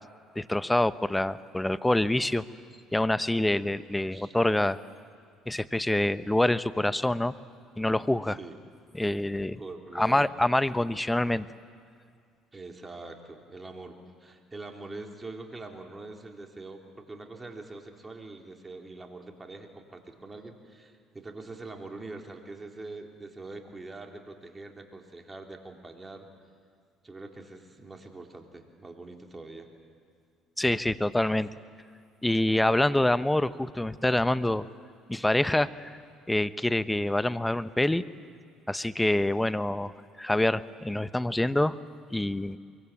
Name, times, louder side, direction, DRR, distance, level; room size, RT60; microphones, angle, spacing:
voice 1, 0.3-2.5 2.9-4.8 5.5-7.3 7.8-8.4 8.9-9.6 9.9-11.5 30.6-31.5 32.2-34.7 35.1-35.9 36.3-38.0 38.7-39.9 40.2-41.8 42.1-42.6, left 1 dB, 10° left, 15 dB, 0.8 m, -26 dB
voice 2, 9.6-10.5 12.5-26.3 27.0-29.7, right 3 dB, 20° right, 3 dB, 3.5 m, -44 dB
23.5 x 23.5 x 8.6 m, 2.2 s
supercardioid pair, 75°, 0 cm